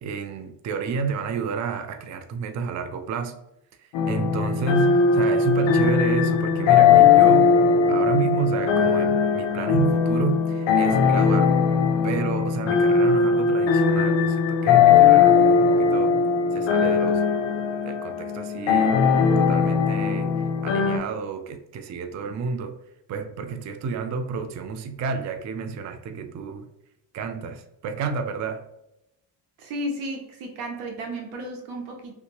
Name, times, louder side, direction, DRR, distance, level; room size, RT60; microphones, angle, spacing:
voice 1, 0.0-3.3 4.1-7.6 7.9-11.6 12.0-16.1 16.5-17.2 17.8-19.0 19.4-20.3 20.6-22.8 23.1-26.7 27.1-28.6, right 5 dB, 40° right, 8 dB, 0.4 m, -30 dB
sound 1, 3.9-21.0, left 6 dB, 65° left, 0.6 m, -19 dB
voice 2, 29.6-32.1, right 1 dB, 85° right, 2 dB, 1.0 m, -33 dB
3.3 x 2.8 x 2.9 m, 0.86 s
cardioid pair, 90°, 49 cm